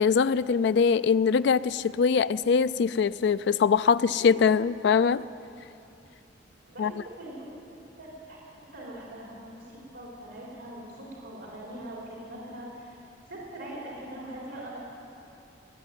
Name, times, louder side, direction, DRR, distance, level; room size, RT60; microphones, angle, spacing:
voice 1, 0.0-5.2 6.8-6.9, left 6 dB, 65° left, 16 dB, 0.3 m, -22 dB
voice 2, 6.7-7.5 8.0-8.4 8.7-13.0 13.3-14.8, right 1 dB, 80° right, -4 dB, 3.7 m, -42 dB
18.5 x 8.4 x 9.0 m, 2.7 s
head